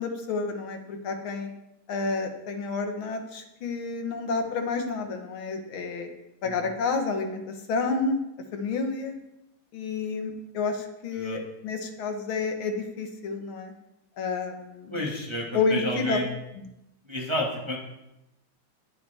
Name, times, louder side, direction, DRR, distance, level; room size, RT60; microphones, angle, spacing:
voice 1, 0.0-1.5 1.9-6.1 6.4-8.2 8.5-9.2 9.7-13.7 14.2-15.0 15.5-16.2 16.6-16.7, left 4 dB, 85° left, 5 dB, 2.2 m, -30 dB
voice 2, 14.9-16.3 17.1-17.8, left 1 dB, 15° right, -2 dB, 1.7 m, -30 dB
20.0 x 8.2 x 3.5 m, 0.89 s
omnidirectional pair, 2.2 m